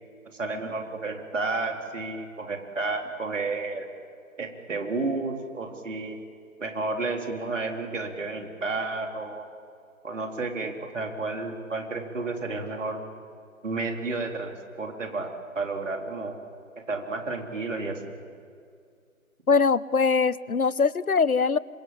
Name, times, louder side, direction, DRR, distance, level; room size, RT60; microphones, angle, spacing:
voice 1, 0.3-3.9 4.4-6.2 6.6-9.5 10.0-13.0 13.6-14.5 14.8-16.4 16.9-18.1, right 3 dB, 60° right, 3 dB, 3.9 m, -31 dB
voice 2, 19.5-21.6, left 5 dB, 85° left, 20 dB, 0.9 m, -22 dB
26.5 x 23.5 x 8.9 m, 2.3 s
figure-of-eight pair, 145°, 42 cm